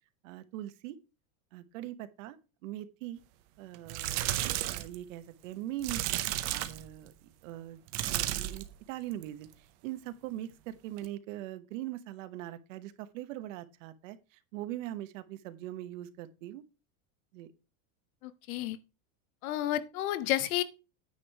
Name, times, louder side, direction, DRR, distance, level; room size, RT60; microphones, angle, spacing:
voice 1, 0.2-1.0 1.5-3.2 3.6-6.0 6.5-7.1 7.4-16.6 17.3-17.5, right 13 dB, 65° right, 1.1 m, -41 dB
sound 1, 3.7-5.0 5.8-6.9 7.9-8.7 9.1-9.5 11.0-11.1, right 14 dB, 40° right, 0.7 m, -33 dB
voice 2, 18.2-18.8 19.4-20.6, left 14 dB, 80° left, 1.1 m, -31 dB
9.5 x 5.0 x 4.7 m
supercardioid pair, 175°, 42 cm